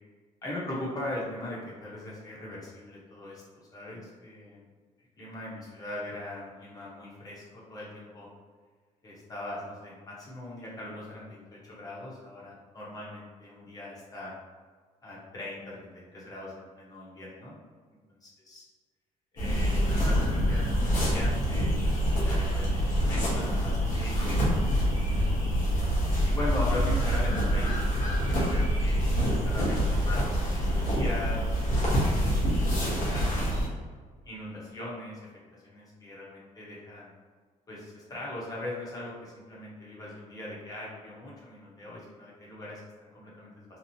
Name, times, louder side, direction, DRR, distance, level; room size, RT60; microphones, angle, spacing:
voice 1, 0.4-3.4 3.7-4.6 5.2-8.3 9.0-14.3 15.0-17.5 18.2-18.6 19.3-25.2 26.2-29.1 29.4-32.1 32.4-33.6 34.2-35.2 35.5-37.1 37.7-43.6, left 1 dB, 25° left, -6 dB, 0.8 m, -40 dB
sound 1, 19.4-33.7, equal, 75° left, 1.0 m, -26 dB
2.9 x 2.0 x 2.7 m, 1.5 s
cardioid pair, 130°, 14 cm